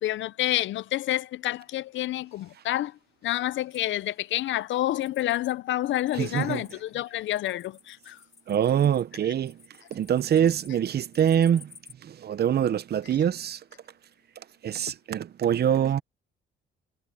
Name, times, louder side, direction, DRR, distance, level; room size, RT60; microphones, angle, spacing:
voice 1, 0.0-8.2, left 14 dB, 70° left, 0.6 m, -29 dB
sound 1, 3.7-5.6 5.8-11.9, left 4 dB, 35° left, 7.0 m, -54 dB
voice 2, 6.2-6.6 8.5-9.6 9.9-11.7 12.0-13.6 14.6-16.0, right 9 dB, 55° right, 0.8 m, -24 dB
cardioid pair, 90°, 20 cm